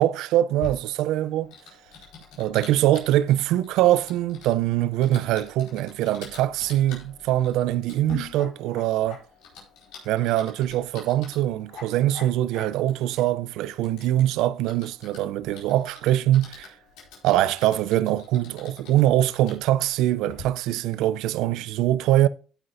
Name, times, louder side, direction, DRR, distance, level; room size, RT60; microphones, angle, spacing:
voice 1, 0.0-1.5 2.4-9.2 10.1-16.7 17.2-22.3, right 13 dB, 80° right, 0.4 m, -23 dB
Typing, 0.6-20.4, left 4 dB, 85° left, 4.5 m, -45 dB
16.0 x 5.5 x 2.6 m
supercardioid pair, 65°, 0 cm